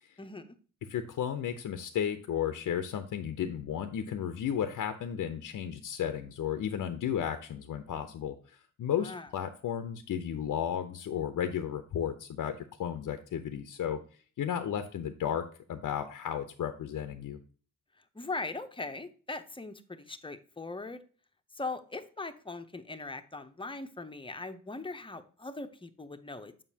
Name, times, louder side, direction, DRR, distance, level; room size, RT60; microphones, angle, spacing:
voice 1, 0.2-0.6 9.0-9.3 18.1-21.0 21.5-26.5, left 3 dB, 15° left, 9 dB, 0.7 m, -40 dB
voice 2, 0.9-14.0 14.4-17.4, left 9 dB, 65° left, 9 dB, 0.6 m, -34 dB
7.1 x 5.4 x 2.7 m, 0.40 s
cardioid pair, 65°, 34 cm